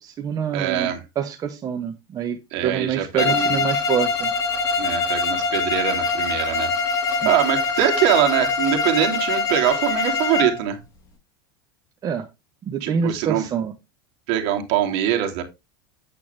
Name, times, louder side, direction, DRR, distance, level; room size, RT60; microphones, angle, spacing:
voice 1, 0.0-4.3 7.2-7.3 12.0-12.3 12.7-13.7, right 7 dB, 30° right, 1.3 m, -26 dB
voice 2, 0.5-1.0 2.5-3.6 4.8-10.8 12.8-13.5 14.3-15.4, right 11 dB, 60° right, 3.0 m, -23 dB
Bowed string instrument, 3.2-10.6, left 4 dB, 25° left, 7.4 m, -23 dB
9.0 x 8.3 x 3.4 m
supercardioid pair, 130°, 12 cm